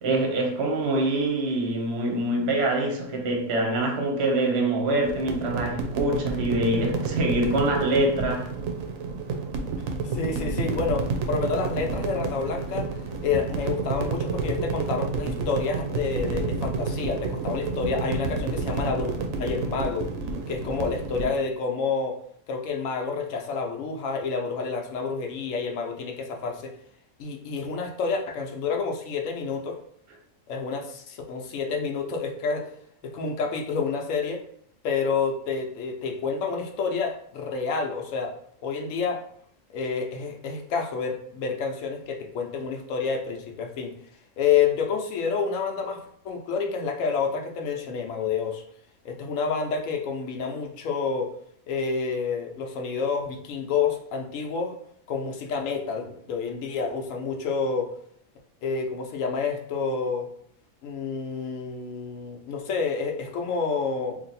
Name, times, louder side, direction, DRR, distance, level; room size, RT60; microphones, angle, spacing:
voice 1, 0.0-8.5, right 1 dB, 55° right, 1 dB, 1.0 m, -25 dB
sound 1, 5.0-21.3, right 4 dB, 75° right, 1.0 m, -30 dB
voice 2, 10.0-12.9 13.2-20.1 20.5-22.2 22.5-26.7 27.2-29.8 30.5-32.7 33.0-34.4 34.8-38.4 38.6-39.2 39.7-43.9 44.4-46.0 46.2-48.6 49.0-51.3 51.7-54.7 55.1-57.9 58.6-60.3 60.8-64.2, left 5 dB, 70° left, 3 dB, 1.0 m, -29 dB
2.9 x 2.6 x 4.0 m, 0.67 s
omnidirectional pair, 1.5 m